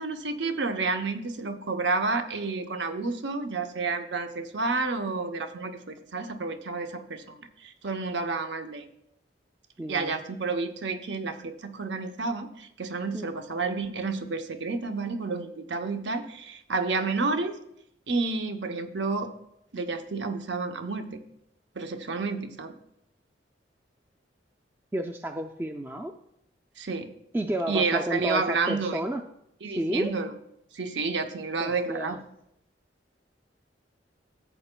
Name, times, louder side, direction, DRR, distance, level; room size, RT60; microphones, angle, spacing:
voice 1, 0.0-8.9 9.9-17.5 18.1-19.3 19.7-21.2 21.8-22.7 26.8-27.1 27.7-29.0 29.6-30.3 30.7-32.1, right 4 dB, 70° right, 7 dB, 0.8 m, -30 dB
voice 2, 9.8-10.1 13.1-13.3 24.9-26.1 27.3-29.2 29.7-30.1 31.6-32.2, right 1 dB, 10° right, 5 dB, 0.3 m, -31 dB
14.0 x 7.8 x 2.2 m, 0.76 s
head